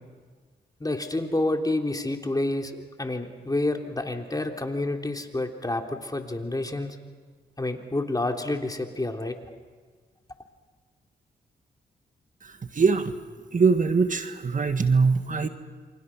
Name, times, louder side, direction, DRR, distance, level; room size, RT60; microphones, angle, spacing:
voice 1, 0.8-7.0 7.6-9.4, left 2 dB, 20° left, 3 dB, 3.3 m, -29 dB
voice 2, 12.7-13.1 13.5-15.5, right 4 dB, 45° right, 8 dB, 1.7 m, -22 dB
28.5 x 25.0 x 6.2 m, 1.5 s
cardioid pair, 55°, 18 cm